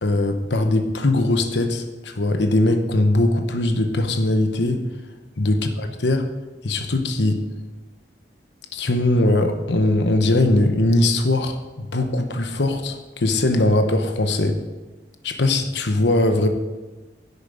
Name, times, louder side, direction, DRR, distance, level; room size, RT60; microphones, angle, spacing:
voice 1, 0.0-4.8 5.4-6.2 6.6-7.4 8.7-14.6 15.2-16.5, left 2 dB, 75° left, 7 dB, 1.0 m, -20 dB
10.5 x 8.3 x 5.0 m, 1.2 s
head